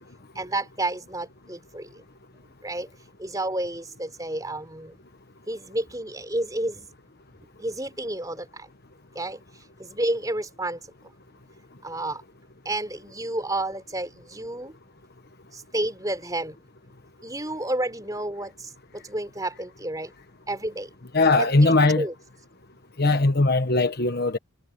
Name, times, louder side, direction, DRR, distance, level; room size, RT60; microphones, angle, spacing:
voice 1, 0.3-2.0 2.6-2.9 3.2-4.9 5.5-6.9 7.6-8.7 9.1-10.8 11.8-12.2 12.6-14.8 15.5-16.6 17.2-20.1 20.5-20.9 21.4-22.1, right 1 dB, 15° right, 4.0 m, -31 dB
voice 2, 21.1-22.1 23.0-24.4, left 2 dB, 45° left, 1.3 m, -20 dB
head